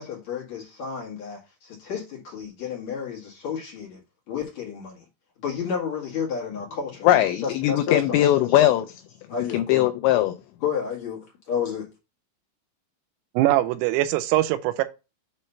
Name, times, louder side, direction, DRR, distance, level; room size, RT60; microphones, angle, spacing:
voice 1, 0.0-4.0 4.3-5.0 5.4-8.2 9.3-9.9 10.6-11.9, left 7 dB, 50° left, 2.3 m, -31 dB
voice 2, 7.0-8.9 9.5-10.3, left 13 dB, 85° left, 2.6 m, -20 dB
voice 3, 13.4-14.8, right 15 dB, 90° right, 3.3 m, -22 dB
7.5 x 3.2 x 5.5 m
omnidirectional pair, 5.8 m